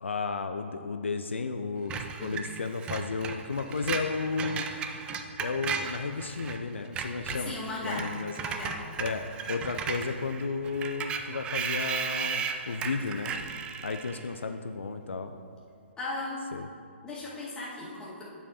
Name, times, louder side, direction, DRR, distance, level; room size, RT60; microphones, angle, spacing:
voice 1, 0.0-4.7 5.4-8.3 9.0-13.4 13.8-15.3 16.5-16.7, left 4 dB, 75° left, 7 dB, 0.4 m, -33 dB
Screech, 1.9-6.6 6.9-14.3, right 6 dB, 15° right, 0.4 m, -35 dB
voice 2, 7.5-8.1 8.4-8.8 16.0-16.4 17.0-18.2, left 2 dB, 10° left, -7 dB, 1.8 m, -36 dB
10.0 x 7.0 x 2.8 m, 2.4 s
figure-of-eight pair, 130°, 7 cm